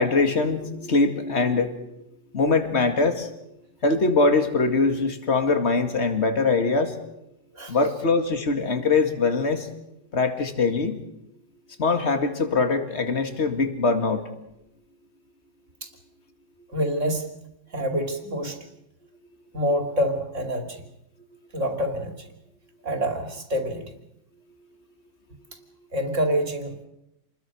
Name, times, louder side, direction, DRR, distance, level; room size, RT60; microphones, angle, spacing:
voice 1, 0.0-1.8 2.3-3.3 3.8-7.0 7.7-9.7 10.1-11.0 11.8-14.3, left 3 dB, 40° left, 7 dB, 2.4 m, -22 dB
voice 2, 16.7-17.3 17.7-18.6 19.5-20.9 21.5-22.3 22.8-23.9 25.9-26.8, equal, 45° right, 5 dB, 3.1 m, -27 dB
27.5 x 21.0 x 6.2 m, 0.86 s
omnidirectional pair, 1.9 m